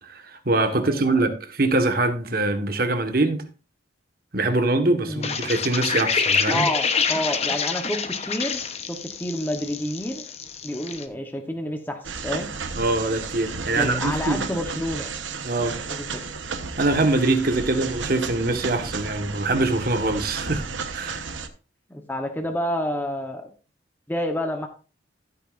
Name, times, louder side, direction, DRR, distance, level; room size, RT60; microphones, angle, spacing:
voice 1, 0.0-3.4 4.3-6.7 12.8-14.5 15.4-15.8 16.8-20.6 20.9-21.2, right 2 dB, 50° right, 1.5 m, -23 dB
voice 2, 0.7-1.1 5.1-5.4 6.5-8.6 8.9-10.3 10.6-12.5 13.7-15.1 15.8-16.1 21.9-23.5 24.1-24.7, left 1 dB, 10° left, 1.0 m, -29 dB
sound 1, 5.2-11.0, left 6 dB, 35° left, 1.0 m, -27 dB
sound 2, 12.0-21.5, right 4 dB, 85° right, 1.1 m, -33 dB
14.5 x 9.0 x 2.6 m
head